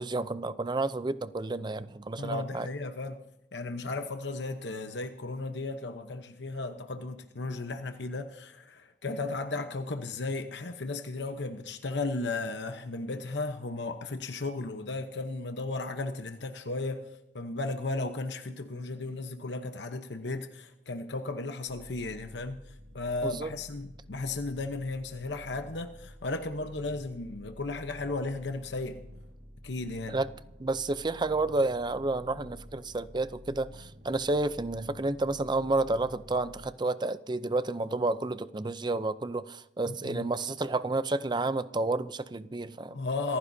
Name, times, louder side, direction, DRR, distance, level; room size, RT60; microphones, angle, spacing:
voice 1, 0.0-2.7 23.2-23.5 30.1-30.3 30.6-43.0, right 2 dB, 25° right, 0.6 m, -30 dB
voice 2, 2.2-3.2 3.5-17.0 17.3-22.6 22.9-29.0 29.6-30.2 39.9-40.3 42.9-43.4, left 3 dB, 70° left, 1.0 m, -35 dB
sound 1, 21.6-36.7, left 1 dB, 80° right, 5.5 m, -50 dB
26.5 x 15.0 x 2.8 m
head